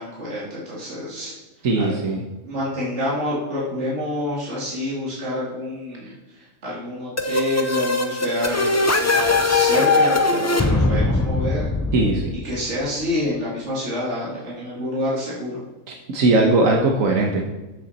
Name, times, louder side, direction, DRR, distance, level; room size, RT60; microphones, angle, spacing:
voice 1, 0.0-1.3 2.4-6.1 6.6-11.7 12.4-15.6, left 1 dB, 60° right, -7 dB, 2.7 m, -27 dB
voice 2, 1.6-2.2 6.0-6.1 11.9-12.3 15.9-17.4, right 2 dB, 85° right, 1 dB, 1.5 m, -19 dB
sound 1, 7.2-12.8, left 3 dB, 20° left, 0.4 m, -20 dB
13.0 x 6.8 x 4.2 m, 1.1 s
omnidirectional pair, 1.4 m